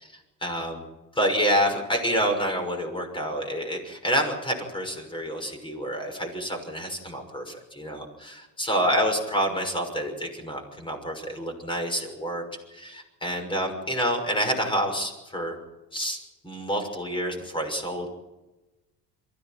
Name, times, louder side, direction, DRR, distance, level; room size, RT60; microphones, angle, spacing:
voice 1, 0.4-0.8 1.2-12.4 12.7-15.6 15.9-16.2 16.4-18.1, equal, 15° left, 4 dB, 6.0 m, -28 dB
23.0 x 15.5 x 9.1 m, 1.1 s
cardioid pair, 110°, 37 cm